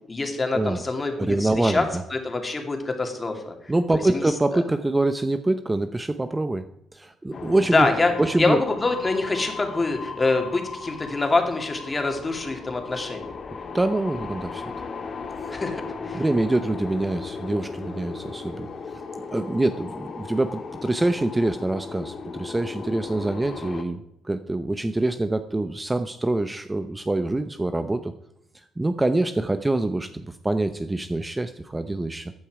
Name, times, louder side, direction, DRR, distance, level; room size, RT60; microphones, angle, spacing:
voice 1, 0.0-1.8 2.1-4.3 4.5-4.6 7.7-8.1 8.4-13.3 15.5-16.2, left 3 dB, 25° left, 4 dB, 2.6 m, -25 dB
voice 2, 1.2-2.0 3.7-6.6 6.9-7.9 8.2-8.6 13.7-14.6 16.1-19.0 19.3-28.1 28.8-32.3, right 2 dB, 15° right, 10 dB, 0.7 m, -25 dB
sound 1, 7.3-23.8, left 4 dB, 45° left, 1.6 m, -36 dB
14.5 x 9.1 x 4.9 m, 0.80 s
cardioid pair, 90°, 0 cm